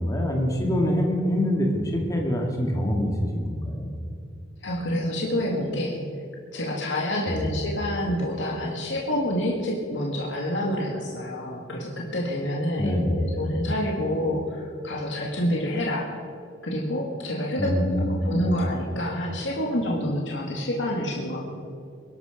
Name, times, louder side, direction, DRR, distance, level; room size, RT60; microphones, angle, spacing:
voice 1, 0.0-3.9 7.3-7.4 12.8-13.3 17.6-18.3, equal, 20° left, 0 dB, 2.0 m, -25 dB
voice 2, 4.6-6.0 6.5-16.1 16.6-21.4, left 1 dB, 85° left, -2 dB, 2.1 m, -28 dB
21.5 x 12.0 x 5.1 m, 2.4 s
head